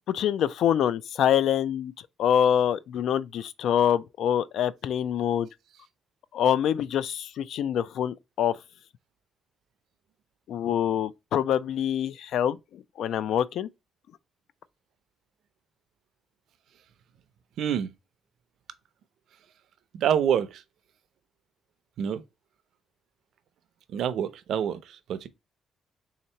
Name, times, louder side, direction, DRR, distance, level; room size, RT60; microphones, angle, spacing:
voice 1, 0.1-1.9 2.2-5.5 6.3-8.6 10.5-13.7, left 9 dB, 65° left, 0.3 m, -25 dB
voice 2, 17.6-17.9 19.9-20.6 22.0-22.2 23.9-25.3, right 9 dB, 60° right, 0.5 m, -27 dB
3.7 x 2.8 x 4.3 m
cardioid pair, 175°, 0 cm